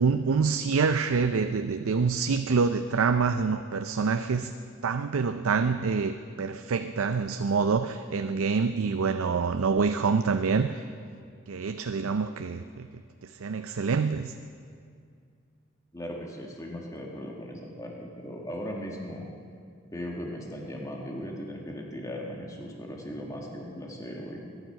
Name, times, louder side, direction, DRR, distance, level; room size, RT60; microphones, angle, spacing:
voice 1, 0.0-4.5 4.8-10.9 11.5-12.9 13.2-14.3, right 5 dB, 90° right, 9 dB, 0.5 m, -26 dB
voice 2, 15.9-19.3 19.9-24.5, equal, 15° left, -1 dB, 1.8 m, -38 dB
21.5 x 10.5 x 5.8 m, 2.2 s
head